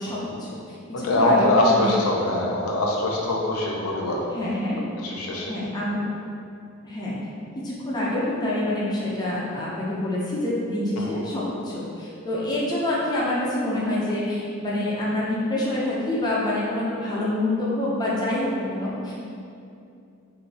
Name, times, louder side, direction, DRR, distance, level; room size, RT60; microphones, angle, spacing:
voice 1, 0.0-1.9 4.3-4.8 5.5-6.0 6.8-7.1 7.6-19.1, left 1 dB, 20° left, -7 dB, 0.5 m, -26 dB
voice 2, 0.9-4.3 5.0-5.5 11.0-11.1, left 2 dB, 85° left, -2 dB, 0.5 m, -23 dB
3.0 x 2.6 x 2.7 m, 2.5 s
head